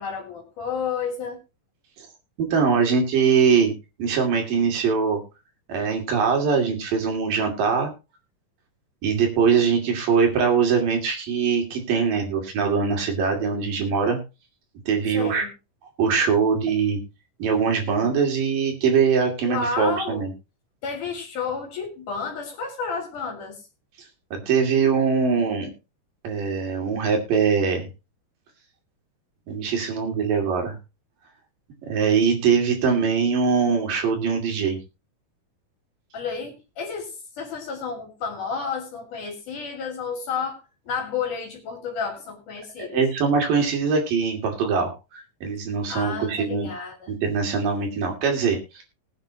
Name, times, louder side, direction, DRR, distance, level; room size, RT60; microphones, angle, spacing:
voice 1, 0.0-1.4 15.1-15.5 19.5-20.3 20.8-23.6 36.1-43.0 45.9-47.1, left 5 dB, 70° left, 2 dB, 4.0 m, -31 dB
voice 2, 2.4-3.7 4.0-5.2 5.7-7.9 9.0-14.2 14.9-15.5 16.0-17.0 17.4-20.3 24.3-25.7 26.2-27.9 29.5-30.8 31.8-34.8 42.9-46.7 47.1-48.8, right 5 dB, 85° right, 2 dB, 4.3 m, -22 dB
20.5 x 8.8 x 2.9 m, 0.28 s
omnidirectional pair, 3.8 m